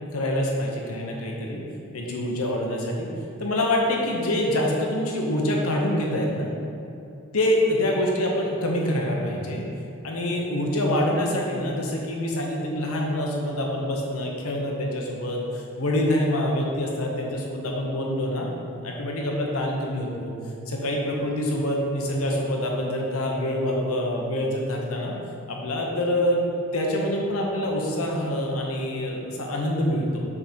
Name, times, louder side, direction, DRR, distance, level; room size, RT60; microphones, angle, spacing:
voice 1, 0.1-1.6 1.9-3.1 3.4-6.5 7.3-9.6 10.0-18.5 18.8-20.3 20.7-25.1 25.5-26.4 26.7-30.2, left 1 dB, 90° left, 0 dB, 1.0 m, -26 dB
6.6 x 3.8 x 4.4 m, 2.7 s
head